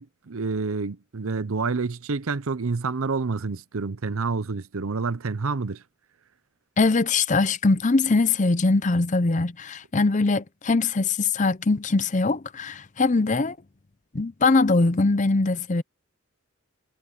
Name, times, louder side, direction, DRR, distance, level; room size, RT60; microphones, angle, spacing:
voice 1, 0.0-5.8, right 4 dB, 70° right, 0.7 m, -28 dB
voice 2, 6.8-13.6 14.1-15.8, left 3 dB, 35° left, 0.6 m, -22 dB
head